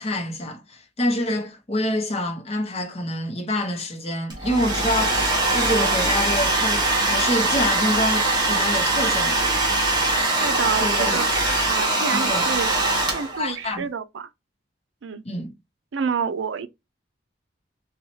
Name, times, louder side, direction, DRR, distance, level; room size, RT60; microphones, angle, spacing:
voice 1, 0.0-9.4 10.7-11.2 12.1-12.4 13.4-13.9 15.2-15.5, left 1 dB, 35° left, 0.8 m, -27 dB
Domestic sounds home sounds, 4.3-13.5, right 2 dB, 20° right, 1.0 m, -22 dB
voice 2, 10.4-11.3 11.7-12.7 13.1-14.3 15.0-15.2 15.9-16.7, right 6 dB, 85° right, 0.4 m, -28 dB
4.0 x 2.3 x 2.9 m
head